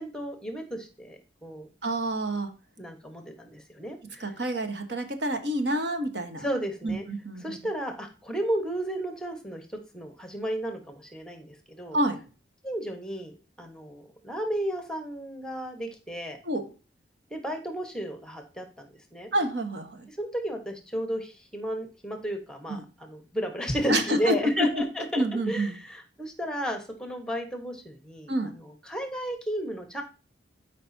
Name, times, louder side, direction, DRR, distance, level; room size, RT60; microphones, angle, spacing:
voice 1, 0.0-1.7 2.8-4.3 6.4-7.0 7.4-9.7 9.9-12.0 12.6-16.4 17.3-19.3 20.1-30.0, equal, 5° left, 4 dB, 1.2 m, -33 dB
voice 2, 1.8-2.5 4.2-6.5 6.8-7.6 11.9-12.2 16.4-16.6 19.3-20.0 22.7-22.8 23.9-24.8 25.1-25.8 28.3-28.5, right 1 dB, 70° right, 6 dB, 1.3 m, -28 dB
12.5 x 5.2 x 2.7 m, 0.34 s
head